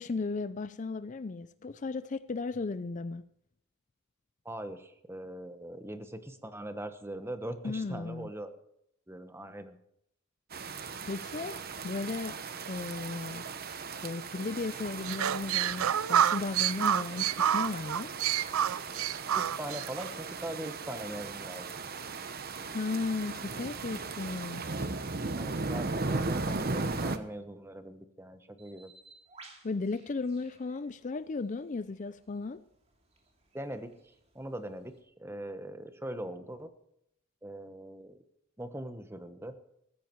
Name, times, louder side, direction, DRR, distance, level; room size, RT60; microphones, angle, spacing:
voice 1, 0.0-3.3 7.6-8.3 11.1-11.6 11.8-12.4 12.7-13.4 14.0-18.1 22.7-24.6 29.6-32.6, left 3 dB, 35° left, 14 dB, 0.4 m, -35 dB
voice 2, 4.4-8.5 9.1-9.8 19.3-21.7 25.3-28.9 33.5-33.9 34.3-36.7 37.4-38.2 38.6-39.6, right 1 dB, 10° right, 9 dB, 1.1 m, -41 dB
sound 1, 10.5-27.2, right 3 dB, 45° right, 1.0 m, -37 dB
sound 2, 15.0-20.1, right 10 dB, 90° right, 0.4 m, -28 dB
Bird, 28.6-35.0, right 3 dB, 30° right, 2.8 m, -59 dB
15.0 x 14.5 x 4.6 m, 0.76 s
head